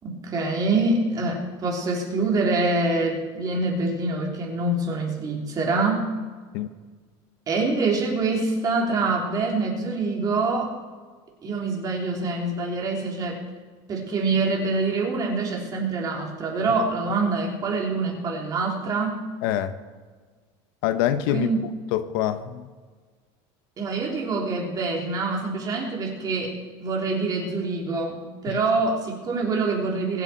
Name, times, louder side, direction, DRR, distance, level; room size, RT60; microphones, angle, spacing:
voice 1, 0.0-6.1 7.5-10.7 11.4-13.4 13.9-19.2 21.3-21.6 23.8-26.5 26.8-30.2, right 3 dB, 30° right, -1 dB, 3.3 m, -25 dB
voice 2, 19.4-19.7 20.8-21.5 21.9-22.7 28.5-28.6, left 11 dB, 80° left, 12 dB, 0.9 m, -25 dB
23.0 x 8.0 x 4.4 m, 1.5 s
cardioid pair, 140°, 12 cm